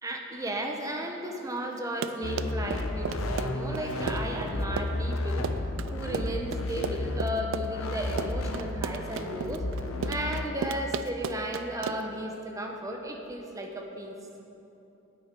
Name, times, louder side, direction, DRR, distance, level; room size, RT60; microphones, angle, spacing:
voice 1, 0.0-5.5 5.9-9.6 10.1-14.1, right 1 dB, 15° right, 2 dB, 0.8 m, -34 dB
Run, 1.8-12.2, right 6 dB, 70° right, 0.3 m, -35 dB
sound 1, 2.2-10.5, left 1 dB, 85° left, 0.8 m, -32 dB
9.6 x 8.6 x 4.5 m, 2.9 s
head